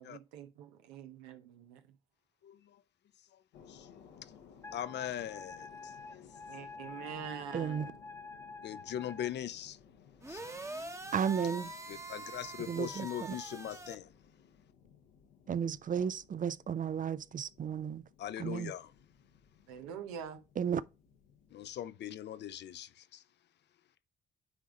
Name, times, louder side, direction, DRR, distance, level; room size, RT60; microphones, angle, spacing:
voice 1, 0.0-2.0 6.5-8.0 19.7-20.4, right 8 dB, 90° right, 0.9 m, -45 dB
voice 2, 2.4-2.8 3.3-4.3 4.7-6.3 8.6-9.8 10.3-10.4 11.9-14.1 18.2-18.9 21.5-23.2, left 11 dB, 60° left, 0.6 m, -41 dB
sound 1, 3.5-21.9, left 7 dB, 90° left, 1.2 m, -60 dB
Wind instrument woodwind instrument, 4.6-9.3, left 4 dB, 15° left, 0.7 m, -48 dB
voice 3, 7.5-7.9 11.1-11.7 12.7-13.3 15.5-18.0 18.4-18.7 20.6-20.8, right 7 dB, 45° right, 0.6 m, -33 dB
sound 2, 10.2-14.0, right 2 dB, 15° right, 1.0 m, -44 dB
9.7 x 3.7 x 3.8 m
hypercardioid pair, 55°, 20 cm